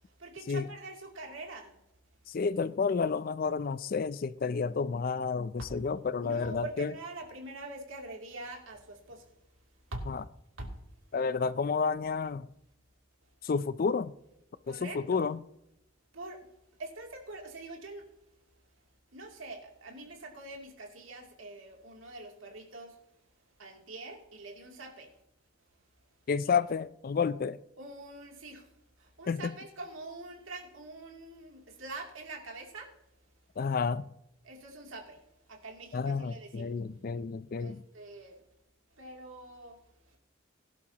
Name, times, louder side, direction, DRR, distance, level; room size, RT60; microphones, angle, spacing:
voice 1, 0.2-1.7 5.6-5.7 6.2-9.3 9.9-10.0 10.6-10.7 14.7-15.2 16.1-16.4 16.8-18.0 19.1-23.0 23.6-25.1 27.8-28.7 29.0-32.9 34.4-35.2 35.5-36.7 37.6-38.4 39.0-39.8, right 2 dB, 80° right, 2.8 m, -44 dB
voice 2, 2.3-6.9 10.1-10.2 11.1-12.5 13.4-14.1 14.7-15.4 26.3-27.6 29.3-29.6 33.6-34.0 35.9-37.8, left 5 dB, 45° left, 0.4 m, -30 dB
17.5 x 11.0 x 2.9 m
head